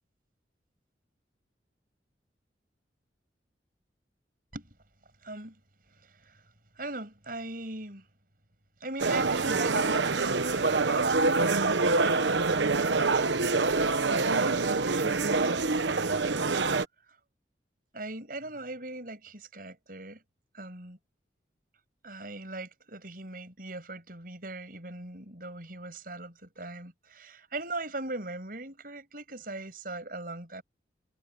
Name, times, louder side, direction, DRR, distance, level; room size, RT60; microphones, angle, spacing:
voice 1, 5.2-5.6 5.9-6.4 6.8-8.1 8.8-12.5 13.5-16.5 17.9-20.2 20.5-21.0 22.0-30.6, right 2 dB, 50° right, 7.6 m, -40 dB
sound 1, 9.0-16.8, right 3 dB, 80° right, 1.1 m, -26 dB
head